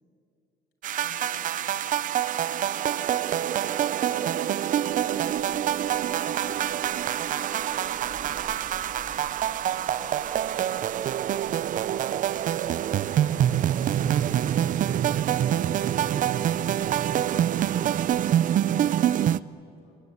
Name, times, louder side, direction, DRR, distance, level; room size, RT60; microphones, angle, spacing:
sound 1, 0.8-19.4, right 11 dB, 50° right, 0.6 m, -26 dB
voice 1, 0.9-2.0 2.3-2.8 3.2-5.7 8.8-12.1 13.1-14.0 17.8-20.0, left 2 dB, 85° left, 2 dB, 5.7 m, -55 dB
sound 2, 4.9-18.3, left 2 dB, 20° left, 2.6 m, -54 dB
voice 2, 6.7-7.0 7.3-8.8 13.1-18.2, left 2 dB, 40° left, 3 dB, 4.5 m, -53 dB
28.0 x 21.5 x 9.4 m, 2.7 s
cardioid pair, 110°, 17 cm